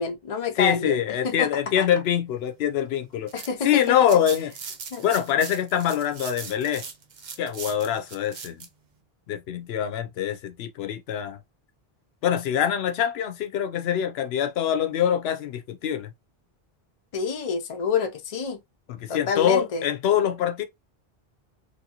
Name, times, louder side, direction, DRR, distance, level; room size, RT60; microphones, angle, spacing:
voice 1, 0.0-1.5 1.8-1.9 3.3-3.8 4.9-5.0 17.1-18.6 19.1-19.8, left 5 dB, 40° left, 0.6 m, -28 dB
voice 2, 0.6-3.3 3.6-4.5 5.0-6.8 7.4-8.7 9.3-11.4 12.2-16.1 18.9-20.6, left 9 dB, 80° left, 0.8 m, -24 dB
sound 1, 3.0-8.7, right 5 dB, 55° right, 0.7 m, -40 dB
3.0 x 2.6 x 2.8 m
omnidirectional pair, 1.0 m